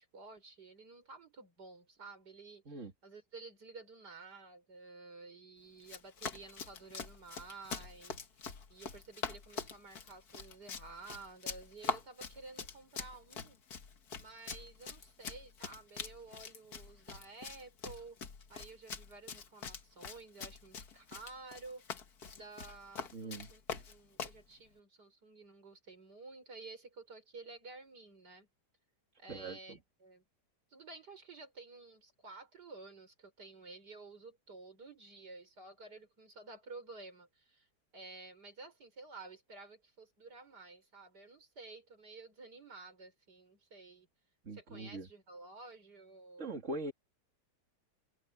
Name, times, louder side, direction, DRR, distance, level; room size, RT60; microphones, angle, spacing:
voice 1, 0.0-13.6 14.2-18.2 18.5-21.8 22.2-28.5 29.2-30.2 30.7-37.7 37.9-44.1 44.5-46.5, right 3 dB, 75° right, 5.6 m, -52 dB
Run, 5.8-24.4, left 6 dB, 65° left, 2.0 m, -44 dB
voice 2, 23.1-23.5 29.3-29.8 44.4-45.1 46.4-46.9, right 2 dB, 45° right, 2.6 m, -42 dB
omnidirectional pair, 1.8 m